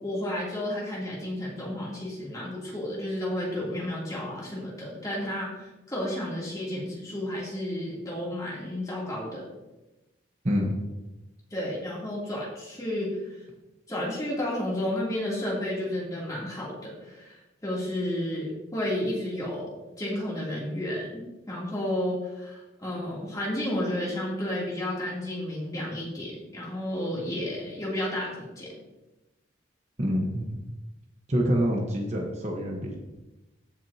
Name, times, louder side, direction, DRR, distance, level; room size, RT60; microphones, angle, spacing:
voice 1, 0.0-9.5 11.5-13.4 13.9-28.7, left 1 dB, 20° left, -6 dB, 3.0 m, -32 dB
voice 2, 30.0-30.6 31.3-33.0, equal, 35° right, 0 dB, 1.2 m, -26 dB
15.5 x 6.3 x 2.9 m, 1.0 s
head